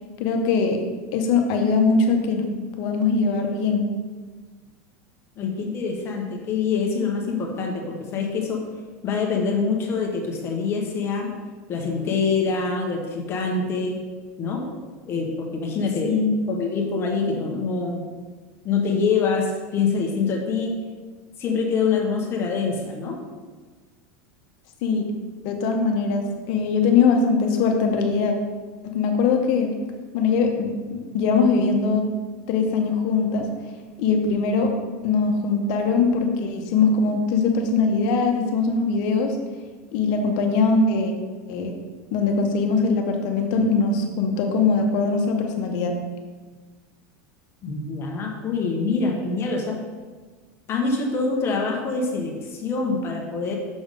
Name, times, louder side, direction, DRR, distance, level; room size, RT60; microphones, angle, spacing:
voice 1, 0.2-0.8 1.1-2.5 2.8-3.9 16.1-16.3 24.8-25.0 25.4-28.3 28.8-29.7 30.1-32.1 32.5-33.5 34.0-34.7 35.0-39.4 39.9-41.1 41.5-41.7 42.1-46.0, left 4 dB, 55° left, 3 dB, 0.9 m, -21 dB
voice 2, 5.4-8.6 9.0-11.3 11.7-14.0 14.4-14.6 15.1-16.1 16.5-18.0 18.6-20.7 21.4-23.2 47.6-49.8 50.7-53.6, left 4 dB, 30° left, 1 dB, 0.9 m, -25 dB
6.2 x 3.5 x 5.2 m, 1.4 s
supercardioid pair, 145°, 8 cm